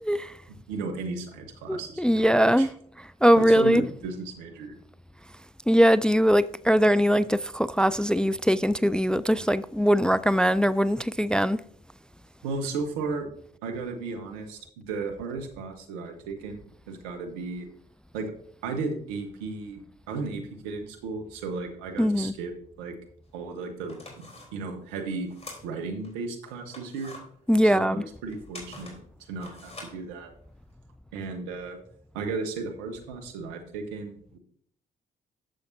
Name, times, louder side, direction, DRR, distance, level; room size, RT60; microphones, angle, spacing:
voice 1, 0.1-0.4 1.7-2.7 3.0-3.8 5.7-11.6 22.0-22.3 27.5-28.0, equal, 5° left, 0.3 m, -21 dB
voice 2, 0.7-2.7 3.3-4.8 12.4-13.3 13.6-17.7 18.1-18.3 18.6-19.8 20.1-22.5 22.8-22.9 23.3-25.3 25.6-27.1 27.7-29.0 29.3-30.3 31.1-31.8 32.1-34.4, right 4 dB, 80° right, 1.2 m, -34 dB
sound 1, 23.2-23.3 23.8-26.1 26.5-30.7, left 2 dB, 30° left, 3.9 m, -46 dB
11.5 x 7.1 x 2.7 m
hypercardioid pair, 45°, 21 cm